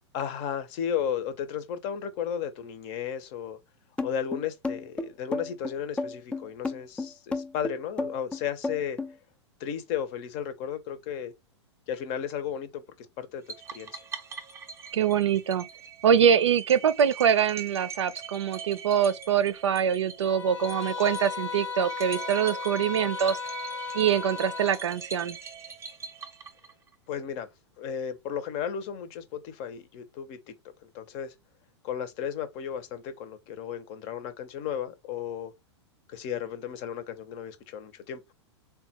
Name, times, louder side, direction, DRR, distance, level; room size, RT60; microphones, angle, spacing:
voice 1, 0.1-3.6 4.0-9.0 9.6-11.3 11.9-13.4 13.7-14.0 27.1-27.5 27.8-30.5 30.8-31.3 31.8-35.5 36.1-38.2, left 8 dB, 45° left, 0.7 m, -34 dB
sound 1, 4.0-9.1, left 3 dB, 5° left, 0.4 m, -32 dB
sound 2, 13.5-26.9, right 6 dB, 20° right, 0.7 m, -42 dB
voice 2, 14.9-15.6 16.0-23.4 23.9-25.4, right 8 dB, 80° right, 0.5 m, -24 dB
sound 3, 20.2-24.8, left 6 dB, 90° left, 0.8 m, -35 dB
3.5 x 2.3 x 2.8 m
hypercardioid pair, 105°, 15 cm